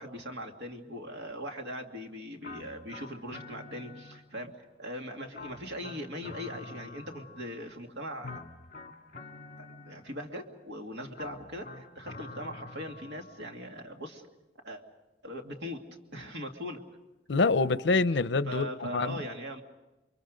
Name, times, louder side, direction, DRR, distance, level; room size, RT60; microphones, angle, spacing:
voice 1, 0.0-4.5 4.8-8.3 9.6-14.3 14.6-14.8 15.2-15.8 16.1-16.8 18.5-19.6, equal, 85° right, 2.4 m, -40 dB
sound 1, 2.4-4.5 5.3-7.7 8.2-10.3 11.1-13.5, left 3 dB, 50° left, 1.9 m, -47 dB
voice 2, 17.3-19.2, left 3 dB, 85° left, 0.7 m, -26 dB
29.5 x 23.5 x 5.2 m
head